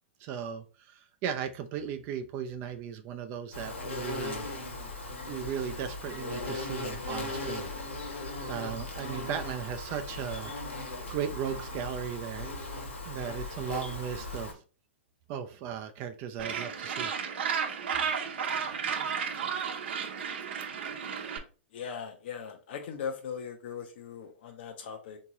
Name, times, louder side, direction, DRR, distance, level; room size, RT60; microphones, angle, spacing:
voice 1, 0.2-4.4 5.3-7.7 8.0-10.5 11.1-12.6 13.1-14.6 15.3-17.1, right 8 dB, 35° right, 7 dB, 0.5 m, -37 dB
Insect, 3.5-14.5, left 2 dB, 85° left, 1.2 m, -38 dB
Gull seagull, 16.4-21.4, right 7 dB, 65° right, 0.8 m, -33 dB
voice 2, 21.7-25.2, left 7 dB, 55° left, 4 dB, 0.6 m, -39 dB
3.6 x 2.7 x 2.9 m, 0.36 s
hypercardioid pair, 115°, 6 cm